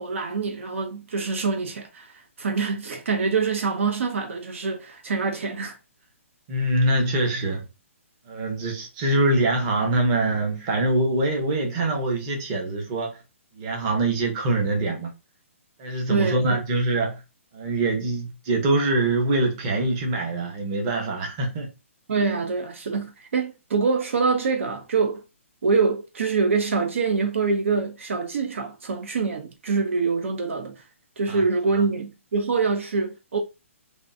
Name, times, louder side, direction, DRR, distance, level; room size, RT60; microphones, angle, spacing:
voice 1, 0.0-5.8 16.1-16.6 22.1-25.2 25.6-30.7 31.2-33.4, right 4 dB, 65° right, 0.8 m, -25 dB
voice 2, 6.5-7.7 8.3-13.2 13.5-15.1 15.8-17.2 17.5-21.7 31.3-31.4, right 2 dB, 25° right, 1.0 m, -24 dB
3.6 x 2.7 x 2.6 m
hypercardioid pair, 165°, 7 cm